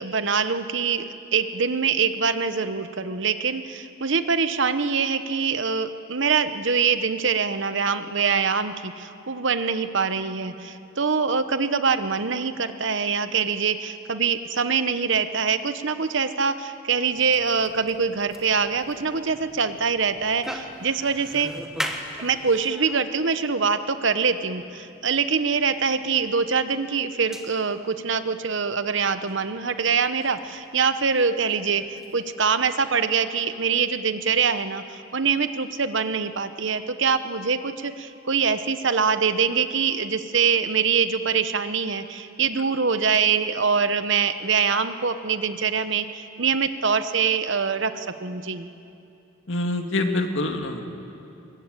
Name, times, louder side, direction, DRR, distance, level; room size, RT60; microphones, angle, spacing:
voice 1, 0.0-21.5 22.2-48.7, right 5 dB, 60° right, 11 dB, 1.0 m, -24 dB
sound 1, 17.1-32.3, equal, ahead, 1.4 m, -40 dB
voice 2, 49.5-50.8, left 2 dB, 60° left, 4 dB, 2.1 m, -26 dB
22.5 x 22.0 x 9.1 m, 2.7 s
head